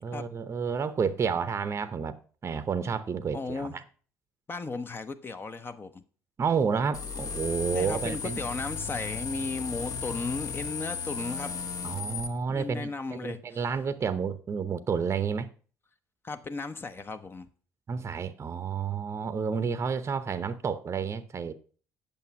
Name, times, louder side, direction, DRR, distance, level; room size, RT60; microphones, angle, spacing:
voice 1, 0.0-2.2 2.4-3.8 6.4-8.4 11.8-15.5 17.9-21.5, right 6 dB, 35° right, 0.8 m, -30 dB
voice 2, 3.3-3.8 4.5-6.0 7.7-11.6 12.5-13.6 16.2-17.5, left 3 dB, 25° left, 0.8 m, -35 dB
sound 1, 6.9-12.3, left 5 dB, 45° left, 1.2 m, -35 dB
8.3 x 6.9 x 5.8 m
figure-of-eight pair, 50°, 8 cm